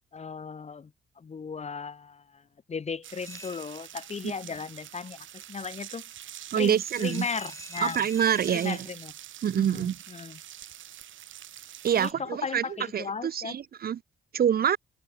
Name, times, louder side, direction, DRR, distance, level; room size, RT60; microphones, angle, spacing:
voice 1, 0.1-0.9 1.2-2.4 2.7-6.0 6.6-8.0 8.5-9.1 9.6-10.4 12.0-13.5, left 5 dB, 35° left, 1.5 m, -36 dB
sound 1, 3.0-12.1, right 12 dB, 75° right, 3.4 m, -45 dB
sound 2, 3.2-4.1 6.9-8.8, left 2 dB, 15° left, 4.3 m, -46 dB
voice 2, 6.5-7.3 7.8-8.8 9.4-10.0 11.8-12.6 12.9-14.0 14.3-14.8, right 9 dB, 50° right, 0.8 m, -26 dB
cardioid pair, 90°, 20 cm